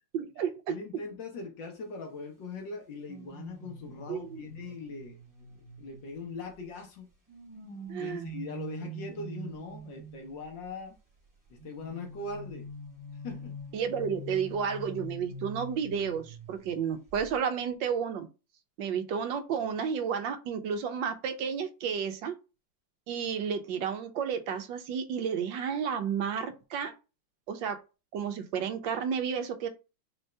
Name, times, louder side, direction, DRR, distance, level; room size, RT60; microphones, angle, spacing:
voice 1, 0.1-0.7 4.1-4.4 7.9-8.2 13.7-18.3 18.8-22.3 23.1-26.9 27.5-27.8 28.1-29.7, right 7 dB, 85° right, 1.4 m, -32 dB
voice 2, 0.7-5.2 5.8-7.1 8.0-11.0 11.5-12.7 13.2-13.6, left 4 dB, 80° left, 1.8 m, -41 dB
sound 1, 3.1-6.7 7.3-10.5 11.6-16.8 17.1-17.4, right 1 dB, 15° right, 0.9 m, -44 dB
5.2 x 2.7 x 3.3 m
omnidirectional pair, 2.0 m